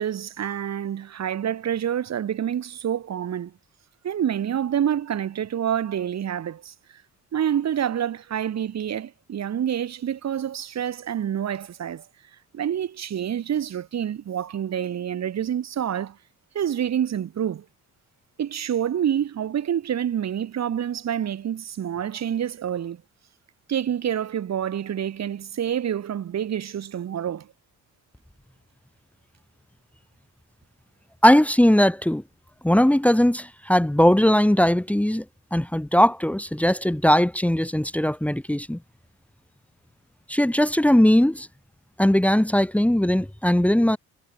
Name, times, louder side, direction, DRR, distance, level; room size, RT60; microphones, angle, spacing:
voice 1, 0.0-3.5 4.0-6.7 7.3-12.0 12.5-16.2 16.5-17.6 18.4-23.0 23.7-27.5, right 9 dB, 60° right, 4.5 m, -27 dB
voice 2, 31.2-32.2 32.6-35.2 35.5-38.8 40.3-41.5 42.0-44.0, equal, 5° left, 2.1 m, -19 dB
cardioid pair, 90°, 30 cm